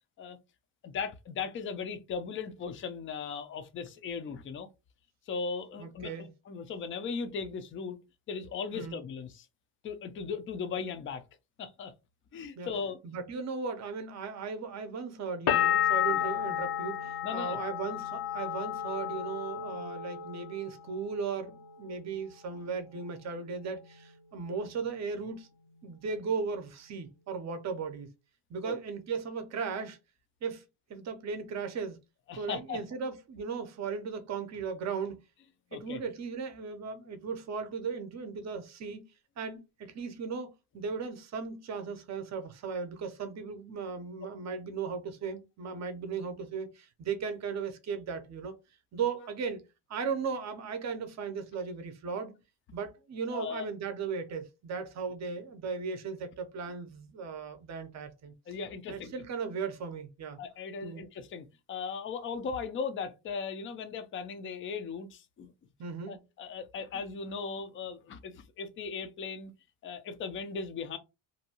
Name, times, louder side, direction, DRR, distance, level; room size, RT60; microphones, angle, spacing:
voice 1, 0.8-4.7 5.3-8.0 8.3-9.5 9.8-11.2 11.6-11.9 12.3-13.0 17.2-17.6 28.6-28.8 32.3-32.8 35.7-36.0 53.3-53.7 58.5-59.1 60.4-65.5 66.1-69.5 69.8-71.0, left 5 dB, 30° left, 0.3 m, -38 dB
voice 2, 5.8-6.3 8.7-9.0 12.6-12.7 13.0-25.5 25.8-28.1 28.5-30.0 30.4-30.6 30.9-32.0 32.4-35.2 35.7-39.0 39.4-48.6 48.9-49.6 49.9-52.3 52.7-58.3 58.9-60.4 60.8-61.0 65.8-66.2, right 5 dB, 35° right, 0.6 m, -37 dB
sound 1, 15.5-21.1 21.4-22.2, left 10 dB, 60° left, 0.7 m, -32 dB
2.6 x 2.2 x 2.8 m
cardioid pair, 130°, 48 cm